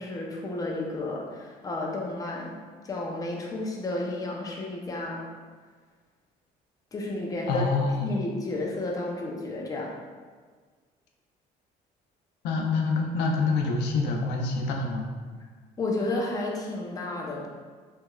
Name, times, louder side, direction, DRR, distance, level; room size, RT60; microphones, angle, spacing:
voice 1, 0.0-5.3 6.9-7.6 8.0-10.0 15.8-17.5, left 2 dB, 20° left, -2 dB, 0.6 m, -32 dB
voice 2, 7.5-8.1 12.4-15.1, left 3 dB, 90° left, 0 dB, 0.5 m, -26 dB
3.4 x 3.1 x 2.3 m, 1.5 s
cardioid pair, 110°, 17 cm